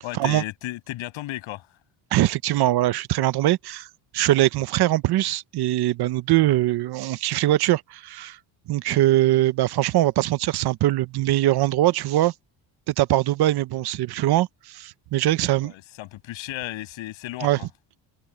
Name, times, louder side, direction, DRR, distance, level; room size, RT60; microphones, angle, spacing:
voice 1, 0.0-1.7 8.9-9.0 15.6-17.7, left 16 dB, 75° left, 7.1 m, -34 dB
voice 2, 2.1-3.9 4.1-8.4 8.7-12.3 12.9-15.7 17.4-17.6, right 15 dB, 55° right, 0.8 m, -22 dB
cardioid pair, 155°, 47 cm